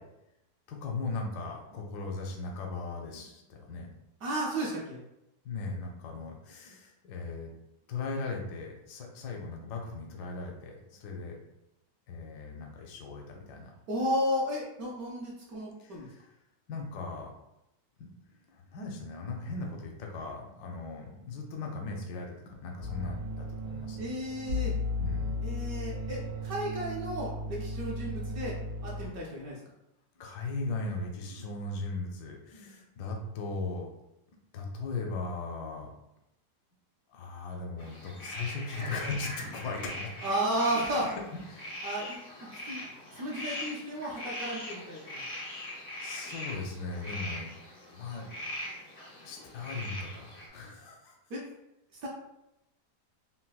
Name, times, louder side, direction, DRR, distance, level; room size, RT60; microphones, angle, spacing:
voice 1, 0.7-3.9 5.4-7.5 7.9-11.4 12.1-13.7 15.8-16.3 16.7-17.3 18.0-18.1 18.5-24.0 25.0-25.5 30.2-33.9 34.5-35.9 37.1-40.2 41.1-41.2 41.5-41.9 45.7-47.5 47.9-48.3 49.2-51.1, left 3 dB, 80° left, 1 dB, 1.1 m, -38 dB
voice 2, 4.2-5.0 13.9-16.1 24.0-24.8 25.4-28.6 28.8-29.6 38.8-38.9 40.2-41.1 41.8-42.2 42.7-42.8 43.2-45.0 51.3-51.4 52.0-52.1, equal, 65° right, -3 dB, 1.0 m, -33 dB
sound 1, 22.8-29.1, left 1 dB, 90° right, 1.3 m, -35 dB
sound 2, 37.8-50.5, left 1 dB, 55° left, 0.4 m, -41 dB
4.0 x 2.0 x 2.3 m, 0.87 s
omnidirectional pair, 1.8 m